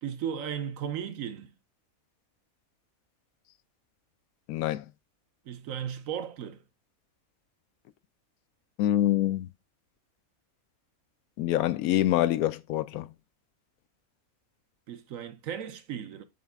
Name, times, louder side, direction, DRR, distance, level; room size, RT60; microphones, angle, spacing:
voice 1, 0.0-1.6 5.4-6.6 14.9-16.2, right 8 dB, 75° right, 1.2 m, -35 dB
voice 2, 4.5-4.8 8.8-9.5 11.4-13.1, left 13 dB, 90° left, 1.1 m, -25 dB
7.4 x 4.0 x 3.5 m
omnidirectional pair, 1.5 m